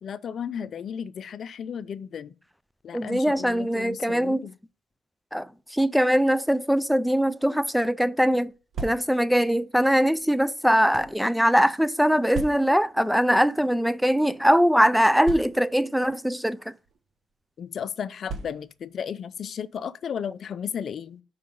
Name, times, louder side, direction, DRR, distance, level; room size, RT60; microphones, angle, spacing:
voice 1, 0.0-2.3 2.8-4.6 17.6-21.2, left 7 dB, 55° left, 0.5 m, -34 dB
voice 2, 2.9-4.4 5.3-8.5 8.8-16.7, equal, ahead, 0.4 m, -22 dB
sound 1, 8.5-9.4 10.2-11.2 12.3-12.9 13.8-14.0 14.2-14.3 15.2-15.9 16.8-17.0 18.2-18.9, right 4 dB, 60° right, 0.8 m, -37 dB
5.3 x 4.7 x 5.3 m
cardioid pair, 90°, 0 cm